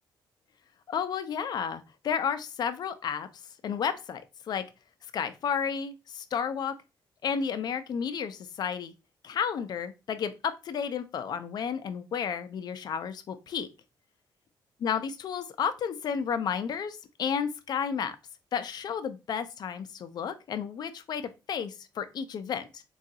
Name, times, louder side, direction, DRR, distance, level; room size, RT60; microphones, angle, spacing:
voice 1, 0.9-3.3 3.6-4.6 5.1-6.7 7.2-8.9 9.2-10.3 10.6-13.7 14.8-18.1 18.5-22.8, left 7 dB, 55° left, 0.4 m, -32 dB
3.6 x 2.3 x 2.7 m
cardioid pair, 110°, 8 cm